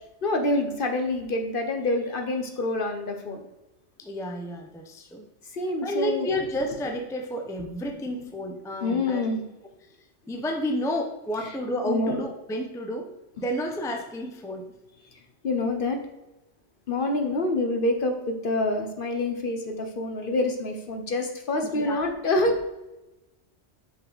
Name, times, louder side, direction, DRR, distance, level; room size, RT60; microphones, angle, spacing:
voice 1, 0.2-3.4 5.5-6.3 7.8-8.3 8.8-9.4 11.4-11.6 11.8-12.1 15.4-16.0 16.9-22.7, left 2 dB, 50° left, 4 dB, 0.9 m, -27 dB
voice 2, 4.0-5.3 5.8-9.2 10.3-13.1 13.4-14.7 21.6-22.0, equal, 5° left, 4 dB, 0.5 m, -31 dB
5.7 x 5.5 x 3.9 m, 1.0 s
omnidirectional pair, 1.2 m